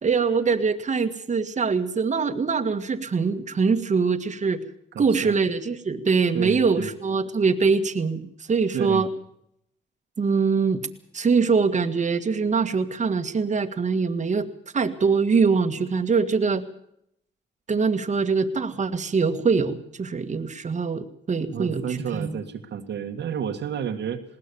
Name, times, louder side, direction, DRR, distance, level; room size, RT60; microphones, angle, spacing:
voice 1, 0.0-4.6 5.0-8.2 8.5-9.1 10.2-10.8 11.1-16.6 17.7-21.8 22.1-22.3, right 5 dB, 35° right, 7 dB, 1.9 m, -23 dB
voice 2, 4.9-5.3 6.3-6.9 8.7-9.0 21.5-24.2, right 8 dB, 65° right, 3 dB, 1.9 m, -30 dB
20.5 x 18.5 x 7.1 m, 0.74 s
cardioid pair, 90°, 20 cm